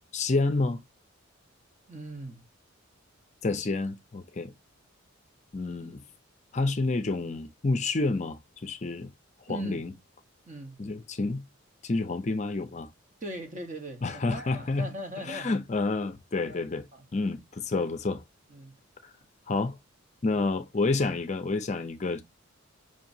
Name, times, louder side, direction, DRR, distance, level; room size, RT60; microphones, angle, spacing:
voice 1, 0.1-0.8 3.4-4.5 5.5-6.0 6.5-9.1 9.5-9.9 10.8-11.4 11.8-12.9 14.0-14.9 15.3-16.8 17.1-18.2 19.0-19.1 19.5-19.8 20.2-22.2, left 3 dB, 35° left, 0.5 m, -29 dB
voice 2, 1.9-2.5 9.5-9.9 10.5-10.8 13.2-15.6 16.3-16.6 16.9-17.0 18.5-18.7, right 1 dB, 35° right, 1.1 m, -40 dB
5.0 x 2.8 x 2.7 m
head